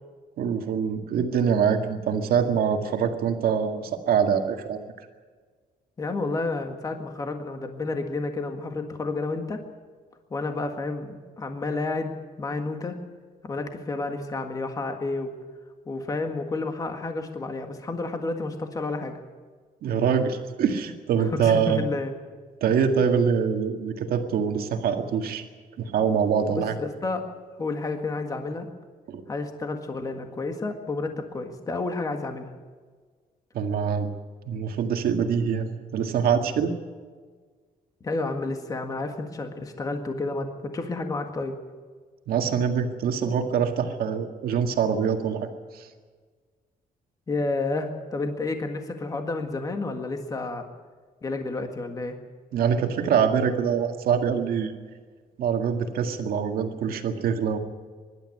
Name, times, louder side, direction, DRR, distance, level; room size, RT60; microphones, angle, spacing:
voice 1, 0.4-4.8 19.8-21.9 22.6-25.4 25.8-26.7 29.1-29.2 33.5-34.1 34.5-36.7 42.3-45.9 52.5-54.7 55.4-57.6, right 7 dB, 80° right, 5 dB, 1.9 m, -24 dB
voice 2, 6.0-9.6 10.3-13.0 13.4-15.4 15.9-19.2 21.2-22.1 26.5-27.2 27.6-28.7 29.3-32.5 38.0-41.6 47.3-50.7 51.2-52.2, left 3 dB, 25° left, 5 dB, 1.7 m, -30 dB
24.0 x 12.0 x 9.8 m, 1.5 s
cardioid pair, 175°, 15 cm